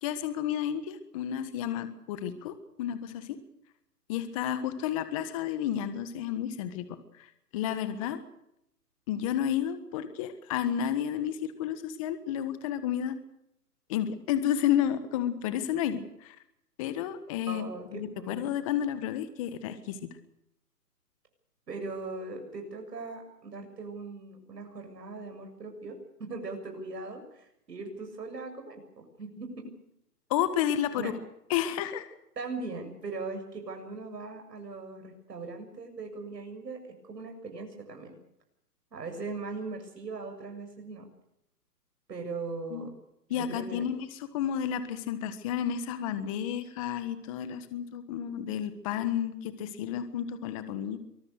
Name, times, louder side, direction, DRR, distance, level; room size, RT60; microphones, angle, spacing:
voice 1, 0.0-3.4 4.1-8.2 9.1-13.2 13.9-16.4 16.8-17.6 17.9-20.1 30.3-31.1 31.5-32.0 42.7-42.9 43.3-51.0, left 10 dB, 20° left, 11 dB, 1.5 m, -31 dB
voice 2, 17.5-18.6 21.7-29.7 30.9-31.1 32.4-38.1 38.9-41.1 42.1-42.9 43.3-43.8, right 3 dB, 80° right, 4 dB, 7.3 m, -40 dB
24.0 x 20.5 x 6.6 m, 0.79 s
hypercardioid pair, 160°, 48 cm